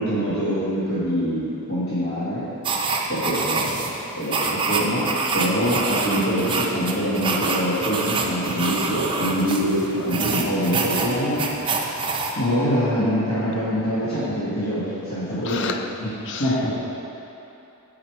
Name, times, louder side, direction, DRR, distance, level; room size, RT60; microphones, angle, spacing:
voice 1, 0.0-2.5 3.1-3.7 4.1-5.1 5.3-15.7 16.0-16.1 16.4-16.7, equal, 70° left, -12 dB, 1.6 m, -24 dB
sound 1, 2.6-12.3, right 3 dB, 20° right, 0.5 m, -26 dB
voice 2, 15.5-15.9 16.3-16.5, left 6 dB, 55° left, 6 dB, 0.4 m, -29 dB
7.6 x 4.9 x 4.6 m, 2.9 s
head